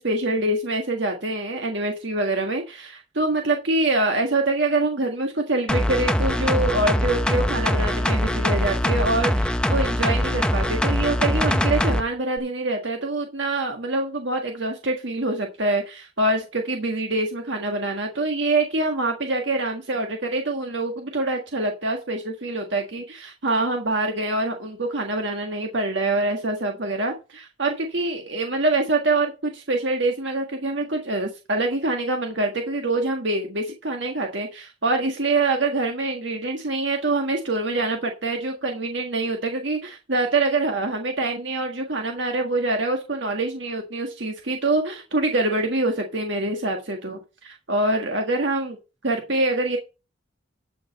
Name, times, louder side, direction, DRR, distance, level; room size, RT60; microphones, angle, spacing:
voice 1, 0.0-48.8 49.0-49.8, right 2 dB, 65° right, 3 dB, 1.6 m, -25 dB
sound 1, 5.7-12.0 12.4-12.5, left 1 dB, 5° left, 0.7 m, -22 dB
11.5 x 5.3 x 5.2 m, 0.29 s
head